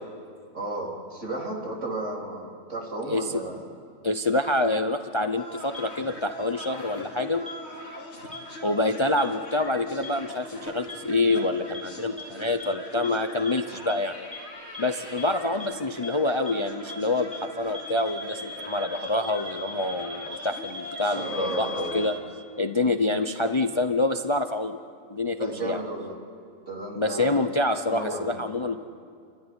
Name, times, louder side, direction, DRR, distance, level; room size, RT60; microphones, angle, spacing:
voice 1, 0.5-3.6 21.0-22.0 25.4-26.2 26.7-27.5 27.9-28.4, right 2 dB, 65° right, -2 dB, 3.8 m, -33 dB
voice 2, 4.0-7.4 8.6-14.2 14.8-22.1 22.6-24.8 25.1-25.8 27.0-28.8, left 2 dB, 30° left, 8 dB, 0.5 m, -26 dB
sound 1, 5.4-22.2, left 1 dB, 55° left, 3.1 m, -41 dB
sound 2, 5.7-5.8 6.6-6.7 7.5-7.6 8.3-8.4 9.2-9.3 10.0-10.1 10.9-11.0 11.3-11.4 11.7-11.8 12.2-12.3 12.6-12.7 13.0-13.1 13.5-13.6 13.9-14.0 14.3-14.4 14.7-14.8 15.2-15.3 15.6-15.7 16.0-16.1 16.5-16.6 16.9-17.0 17.3-17.4 17.7-22.1, left 4 dB, 5° right, 2.0 m, -38 dB
30.0 x 13.0 x 9.7 m, 2.3 s
omnidirectional pair, 1.4 m